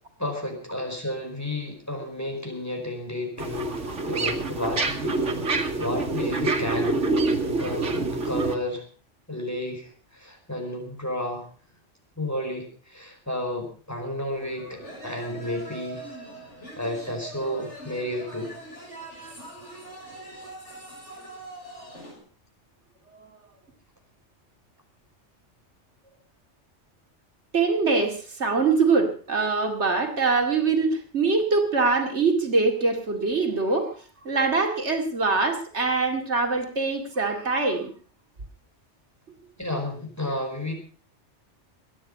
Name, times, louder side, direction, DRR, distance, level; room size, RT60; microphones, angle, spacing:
voice 1, 0.2-7.0 7.6-8.8 9.3-11.4 12.2-16.0 16.8-18.5 39.6-40.7, left 1 dB, 15° left, 2 dB, 4.9 m, -32 dB
sound 1, 3.4-8.6, right 3 dB, 85° right, 2.3 m, -26 dB
sound 2, 14.3-22.2, right 1 dB, 75° left, 6.5 m, -42 dB
voice 2, 27.5-33.9 34.2-37.9, right 4 dB, 70° right, 4 dB, 2.7 m, -23 dB
22.5 x 10.0 x 5.4 m, 0.40 s
omnidirectional pair, 1.2 m